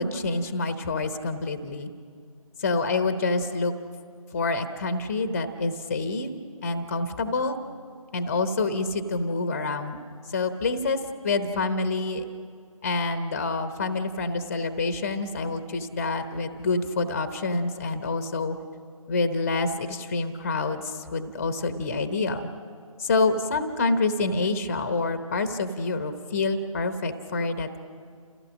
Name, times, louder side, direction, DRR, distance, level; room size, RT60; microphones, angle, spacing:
voice 1, 0.0-1.9 2.6-3.7 4.3-6.3 6.6-7.6 8.1-10.0 10.3-11.0 11.2-12.2 12.8-18.6 19.1-22.5 23.0-27.8, left 3 dB, 25° left, 9 dB, 0.9 m, -27 dB
28.5 x 15.5 x 6.4 m, 2.1 s
figure-of-eight pair, 160°, 18 cm